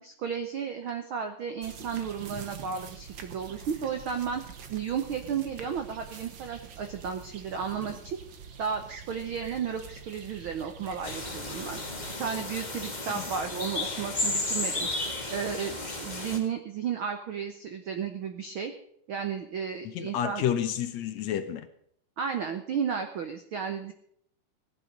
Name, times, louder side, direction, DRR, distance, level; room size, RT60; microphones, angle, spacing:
voice 1, 0.0-4.4 4.7-8.2 8.6-11.8 12.2-14.9 15.3-18.7 19.1-20.4 22.2-23.9, right 7 dB, 80° right, 7 dB, 1.1 m, -33 dB
sound 1, 1.6-12.2, right 7 dB, 55° right, 1.3 m, -45 dB
sound 2, 11.0-16.4, left 2 dB, 20° left, 1.3 m, -33 dB
voice 2, 19.8-21.7, left 10 dB, 70° left, 9 dB, 1.9 m, -30 dB
17.0 x 11.0 x 5.3 m, 0.68 s
omnidirectional pair, 3.7 m